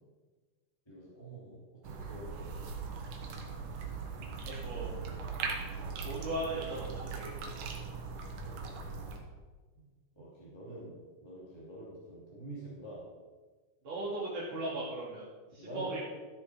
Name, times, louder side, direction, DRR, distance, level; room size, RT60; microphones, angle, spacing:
voice 1, 0.9-2.5 8.2-8.6 8.9-9.0 9.7-11.0 11.2-13.0 15.6-15.9, right 1 dB, 10° left, -8 dB, 2.4 m, -47 dB
sound 1, 1.8-9.2, right 5 dB, 70° right, 2.8 m, -40 dB
voice 2, 4.4-5.0 6.0-7.5 13.8-15.2 15.5-16.0, right 2 dB, 40° right, -10 dB, 2.7 m, -38 dB
14.0 x 6.9 x 4.9 m, 1.4 s
omnidirectional pair, 4.2 m